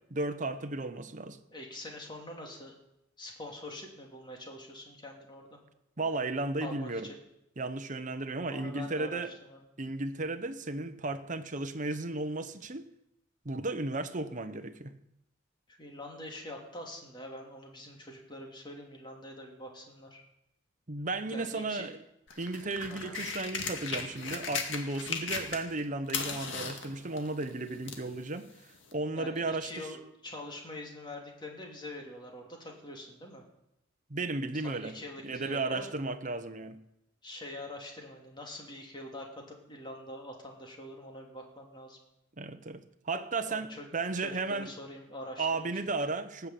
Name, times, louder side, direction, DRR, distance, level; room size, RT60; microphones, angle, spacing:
voice 1, 0.1-1.4 6.0-7.1 7.6-9.3 9.8-12.9 13.4-15.0 20.9-22.0 22.4-28.5 28.9-29.9 34.1-35.0 35.2-36.8 42.4-44.7 45.4-46.5, right 3 dB, 40° right, 1.0 m, -34 dB
voice 2, 1.5-2.7 3.2-5.6 6.6-7.2 8.5-9.6 15.8-20.2 21.3-21.9 22.9-23.2 29.1-33.4 34.5-35.9 37.2-42.0 43.5-43.9 44.1-45.7, left 1 dB, 25° left, 2.9 m, -44 dB
sound 1, 22.3-25.8 26.1-28.1 28.9-29.0, left 5 dB, 65° left, 2.1 m, -36 dB
19.0 x 6.9 x 8.5 m
head